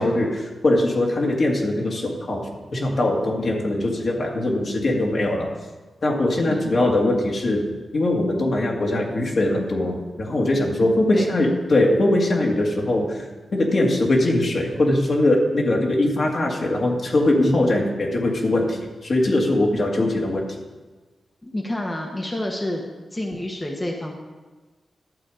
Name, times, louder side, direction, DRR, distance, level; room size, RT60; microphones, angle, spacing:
voice 1, 0.0-5.5 6.0-7.6 7.9-13.3 13.5-20.5, left 1 dB, 55° left, -1 dB, 2.1 m, -21 dB
voice 2, 21.4-22.8 23.1-24.1, left 1 dB, 20° left, 0 dB, 1.3 m, -28 dB
12.0 x 7.1 x 5.0 m, 1.3 s
cardioid pair, 70°, 0 cm